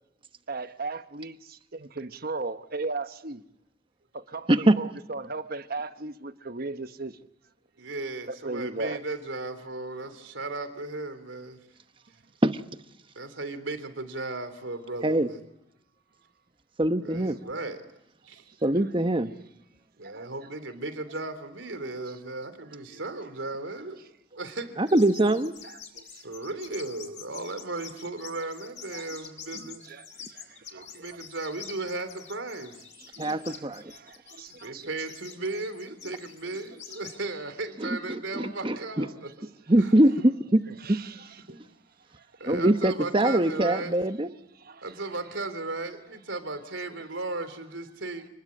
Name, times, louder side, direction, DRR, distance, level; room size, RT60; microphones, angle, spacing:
voice 1, 0.5-1.4 1.7-3.4 4.1-7.1 8.4-9.0 20.1-20.3 26.0-26.1 30.8-30.9 33.2-33.3 34.1-34.9 44.7-44.8, right 3 dB, 50° right, 1.1 m, -35 dB
voice 2, 4.5-4.8 12.4-12.6 15.0-15.3 16.8-17.4 18.6-19.3 24.8-25.5 33.2-33.9 37.8-39.0 39.7-40.6 40.9-41.0 42.4-44.3, right 1 dB, 25° right, 1.1 m, -23 dB
voice 3, 7.8-11.6 13.2-15.4 17.0-17.8 18.2-18.5 20.0-24.0 24.3-25.4 26.2-29.9 30.7-33.2 34.6-39.5 39.8-39.9 41.5-41.6 42.4-44.0 44.8-48.3, right 2 dB, 85° right, 3.4 m, -36 dB
sound 1, 24.9-37.2, left 7 dB, 40° left, 3.0 m, -46 dB
29.0 x 20.5 x 9.8 m
head